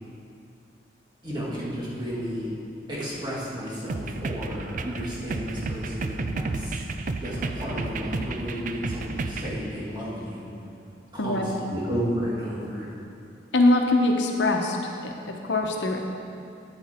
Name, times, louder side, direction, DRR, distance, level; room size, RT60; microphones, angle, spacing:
voice 1, 1.2-2.5 2.9-6.8 7.2-10.5 11.1-12.9, equal, 25° right, -7 dB, 2.0 m, -32 dB
sound 1, 3.9-9.5, right 3 dB, 45° right, 0.4 m, -32 dB
voice 2, 13.5-14.8 15.0-16.0, left 2 dB, 80° left, 2 dB, 0.9 m, -22 dB
9.7 x 7.6 x 4.3 m, 2.5 s
head